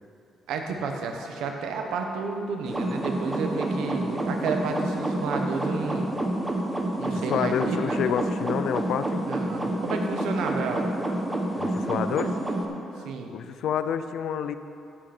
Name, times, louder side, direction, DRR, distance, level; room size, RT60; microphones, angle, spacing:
voice 1, 0.5-6.1 7.0-8.1 9.2-10.9 13.0-13.3, right 4 dB, 85° right, 3 dB, 1.3 m, -31 dB
sound 1, 2.7-12.7, right 1 dB, 20° right, 1.5 m, -28 dB
voice 2, 7.0-9.3 11.6-12.3 13.3-14.6, left 8 dB, 75° left, 11 dB, 0.6 m, -28 dB
16.0 x 7.9 x 4.4 m, 2.6 s
cardioid pair, 90°, 0 cm